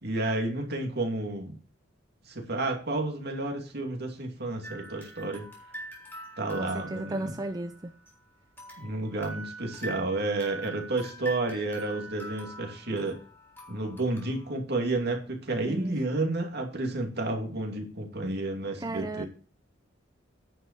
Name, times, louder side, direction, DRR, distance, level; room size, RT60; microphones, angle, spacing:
voice 1, 0.0-1.6 2.3-5.5 6.4-7.3 8.8-13.2 13.7-19.2, right 2 dB, 55° right, 2.5 m, -31 dB
sound 1, 4.6-8.1 8.6-14.5, right 2 dB, 10° left, 3.7 m, -44 dB
voice 2, 6.6-7.9 15.7-16.0 18.8-19.2, right 1 dB, 20° right, 0.5 m, -35 dB
10.0 x 5.7 x 6.6 m
head